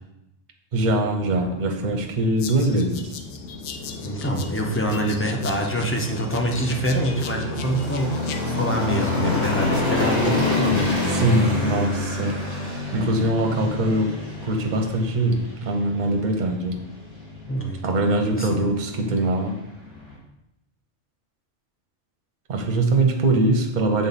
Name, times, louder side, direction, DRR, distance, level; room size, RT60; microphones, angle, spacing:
voice 1, 0.7-3.1 11.1-12.4 12.9-14.2 14.4-16.8 17.8-19.6 22.5-24.1, right 2 dB, 45° right, 3 dB, 0.8 m, -22 dB
sound 1, 0.8-20.1, left 2 dB, 55° left, 2.6 m, -29 dB
sound 2, 2.4-8.4, left 7 dB, 75° left, 0.9 m, -39 dB
voice 2, 4.0-10.9 17.5-18.6, right 1 dB, 20° left, 1 dB, 0.4 m, -26 dB
6.9 x 3.9 x 4.1 m, 0.88 s
omnidirectional pair, 1.3 m